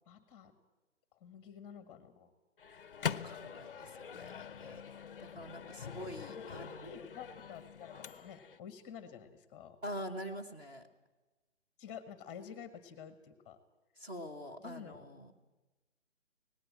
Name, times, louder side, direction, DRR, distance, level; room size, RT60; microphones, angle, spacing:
voice 1, 0.1-0.5 1.1-2.3 4.1-4.5 6.2-9.8 11.8-13.6 14.6-15.0, left 7 dB, 15° left, 12 dB, 1.3 m, -50 dB
Microwave oven, 2.6-8.6, left 7 dB, 50° left, 0.7 m, -43 dB
voice 2, 2.7-4.8 5.2-6.9 9.8-10.9 14.0-15.3, equal, 10° right, 2 dB, 1.1 m, -45 dB
18.5 x 16.0 x 8.8 m, 1.1 s
figure-of-eight pair, 145°, 37 cm